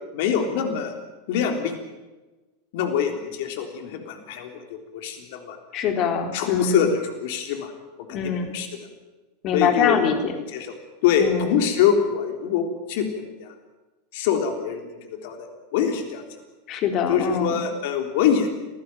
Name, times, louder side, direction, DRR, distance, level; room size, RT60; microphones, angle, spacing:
voice 1, 0.1-0.9 1.3-1.7 2.7-5.6 6.3-7.7 8.1-8.7 9.5-10.7 11.0-13.5 14.1-16.2 17.1-18.5, left 8 dB, 60° left, 5 dB, 3.6 m, -24 dB
voice 2, 5.7-6.9 8.1-8.5 9.4-10.3 11.2-11.6 16.7-17.6, left 7 dB, 45° left, 6 dB, 3.9 m, -24 dB
26.0 x 15.0 x 9.2 m, 1.2 s
hypercardioid pair, 90°, 0 cm